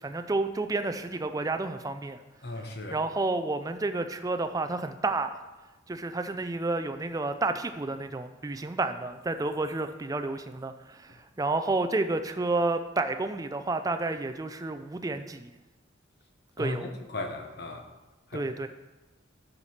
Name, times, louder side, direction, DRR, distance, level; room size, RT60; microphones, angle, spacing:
voice 1, 0.0-2.2 2.9-5.4 5.9-15.5 16.6-16.9 18.3-18.7, right 2 dB, 20° right, 9 dB, 0.3 m, -30 dB
voice 2, 2.4-3.0 16.6-16.8 17.1-17.8 18.3-18.4, left 2 dB, 55° left, 5 dB, 0.9 m, -36 dB
7.1 x 6.5 x 4.3 m, 1.1 s
head